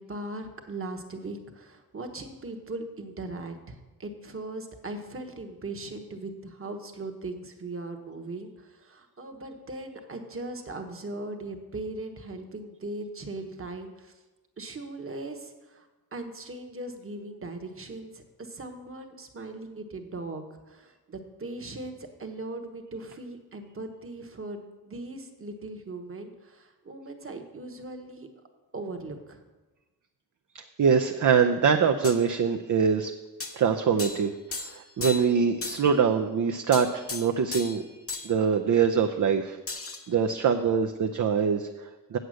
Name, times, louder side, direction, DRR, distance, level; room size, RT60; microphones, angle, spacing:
voice 1, 0.0-14.1 14.6-15.8 16.1-28.3 28.7-29.4, right 2 dB, 35° right, 5 dB, 1.2 m, -39 dB
voice 2, 30.8-33.1 33.5-37.8 38.2-39.6 40.1-42.2, right 6 dB, 50° right, 6 dB, 0.6 m, -24 dB
sound 1, 32.0-32.2 33.4-33.6 34.0-34.3 34.5-35.4 35.6-35.9 36.7-37.8 38.1-38.3 39.7-40.1, left 3 dB, 35° left, 1.0 m, -35 dB
8.1 x 8.0 x 6.3 m, 1.2 s
wide cardioid pair, 120°, 39 cm